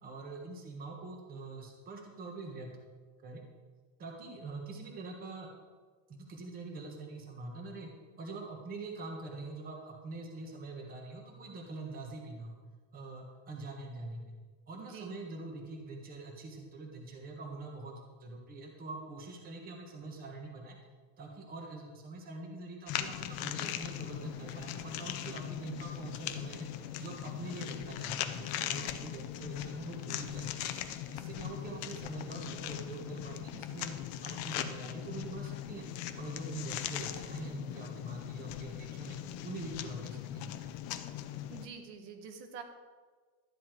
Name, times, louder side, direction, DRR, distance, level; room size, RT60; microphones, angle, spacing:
voice 1, 0.0-2.7 3.2-3.4 4.0-5.5 6.1-7.9 8.2-12.6 12.9-14.3 14.7-20.8 21.2-26.7 27.0-30.7 31.1-33.9 34.2-35.9 36.1-39.2 39.4-40.5, right 3 dB, 20° right, 0 dB, 1.3 m, -44 dB
voice 2, 14.8-15.2 41.5-42.6, right 6 dB, 75° right, 4 dB, 1.8 m, -46 dB
sound 1, 22.9-41.7, left 11 dB, 35° left, 0.6 m, -39 dB
12.5 x 9.8 x 4.6 m, 1.4 s
supercardioid pair, 175°, 49 cm